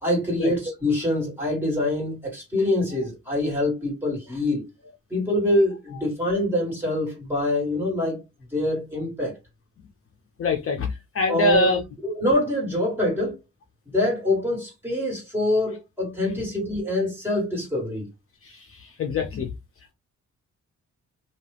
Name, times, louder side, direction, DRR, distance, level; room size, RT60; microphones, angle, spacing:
voice 1, 0.0-4.7 5.1-8.2 8.5-9.3 11.3-11.7 12.0-13.4 13.9-18.1, left 1 dB, 5° right, 1.8 m, -25 dB
voice 2, 10.4-10.9 11.1-11.8 19.0-19.5, left 3 dB, 45° left, 0.6 m, -23 dB
2.8 x 2.4 x 3.2 m
wide cardioid pair, 150°, 31 cm